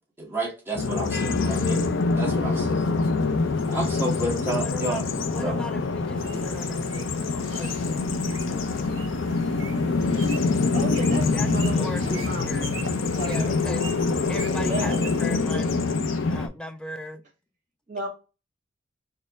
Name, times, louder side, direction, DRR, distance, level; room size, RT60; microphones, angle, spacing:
voice 1, 0.2-1.9 2.1-2.8 3.7-5.0 5.4-5.6 6.3-6.8, right 2 dB, 10° right, 1.2 m, -31 dB
Bird vocalization bird call bird song, 0.7-16.5, left 3 dB, 75° left, 0.5 m, -25 dB
voice 2, 0.8-1.2 3.9-4.2 10.6-12.6 12.8-13.5 14.5-15.0 16.0-16.2 17.9-18.1, right 1 dB, 40° right, 1.6 m, -34 dB
sound 1, 1.1-4.4, left 3 dB, 55° left, 1.0 m, -44 dB
voice 3, 4.6-5.0 5.3-8.4 11.3-12.0 12.5-12.7 13.1-13.9 14.3-17.2, left 1 dB, 5° left, 0.3 m, -39 dB
sound 2, 6.2-15.4, right 5 dB, 75° right, 0.6 m, -43 dB
4.3 x 2.1 x 3.4 m
head